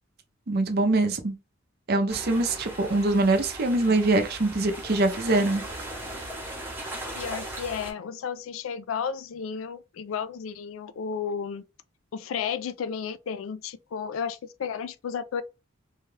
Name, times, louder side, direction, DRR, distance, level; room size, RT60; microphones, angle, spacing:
voice 1, 0.5-1.4 1.9-5.6, right 2 dB, 50° right, 0.6 m, -23 dB
sound 1, 2.1-7.9, right 1 dB, 10° right, 0.8 m, -38 dB
voice 2, 7.1-11.6 12.1-15.4, left 7 dB, 90° left, 0.3 m, -33 dB
2.8 x 2.3 x 3.1 m
head